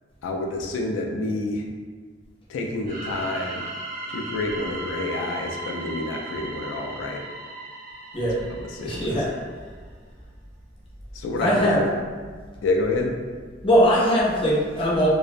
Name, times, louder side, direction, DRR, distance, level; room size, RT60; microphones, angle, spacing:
voice 1, 0.2-1.7 2.5-3.7 4.1-7.2 8.5-9.3 11.1-11.9 12.6-13.2, left 2 dB, 90° left, 1 dB, 0.3 m, -28 dB
sound 1, 2.8-9.5, right 2 dB, 45° right, 0.7 m, -37 dB
voice 2, 8.8-9.3 11.4-11.8 13.6-15.1, equal, 30° left, -5 dB, 0.5 m, -20 dB
2.4 x 2.0 x 2.4 m, 1.5 s
head